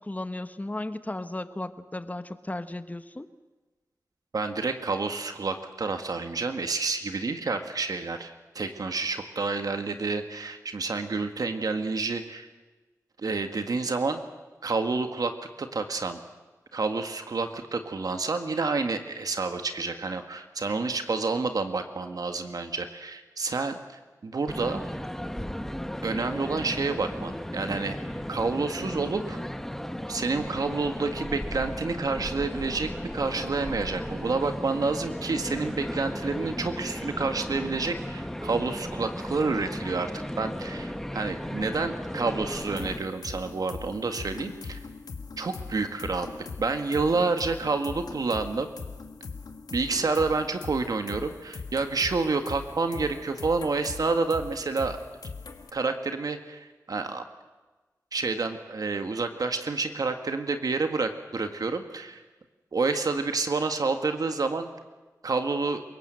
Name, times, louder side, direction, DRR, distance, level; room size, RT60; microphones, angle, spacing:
voice 1, 0.0-3.3, left 2 dB, 25° left, 11 dB, 1.2 m, -35 dB
voice 2, 4.3-12.5 13.2-14.2 14.6-15.3 15.6-16.2 16.7-24.8 26.0-28.0 28.3-29.4 30.1-40.1 40.4-44.8 45.4-46.3 46.6-48.7 49.7-55.0 55.7-57.2 58.1-62.2 62.7-64.7 65.2-65.8, right 3 dB, 75° right, 7 dB, 1.7 m, -29 dB
sound 1, 24.5-43.0, equal, 5° left, 1.3 m, -35 dB
sound 2, 42.6-55.7, left 4 dB, 90° left, 1.9 m, -41 dB
28.5 x 17.5 x 7.8 m, 1.2 s
wide cardioid pair, 65°, 6 cm